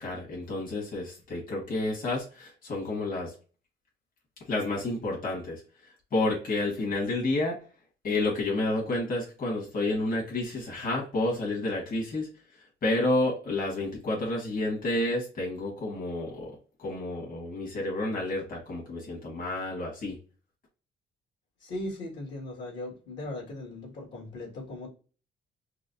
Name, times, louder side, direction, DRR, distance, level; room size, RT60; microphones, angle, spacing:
voice 1, 0.0-3.3 4.5-5.6 6.1-7.6 8.0-12.3 12.8-16.5 16.8-20.2, left 2 dB, 45° left, -3 dB, 1.6 m, -30 dB
voice 2, 21.6-24.9, left 1 dB, 65° left, -2 dB, 1.7 m, -38 dB
4.6 x 2.1 x 2.6 m, 0.36 s
cardioid pair, 90°, 20 cm